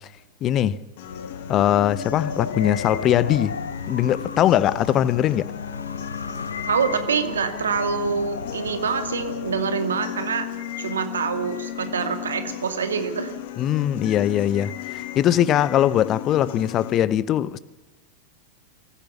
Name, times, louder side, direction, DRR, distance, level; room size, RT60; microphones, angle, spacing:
voice 1, 0.4-0.8 1.5-3.5 3.9-5.5 13.6-17.6, left 11 dB, 30° left, 0.8 m, -21 dB
Wind, 1.0-9.7, left 4 dB, 75° left, 0.7 m, -34 dB
sound 1, 1.0-17.0, left 12 dB, 50° left, 1.5 m, -36 dB
voice 2, 6.7-10.5 10.8-13.4, right 6 dB, 70° right, 2.3 m, -25 dB
24.5 x 15.5 x 7.2 m
figure-of-eight pair, 90°, 0 cm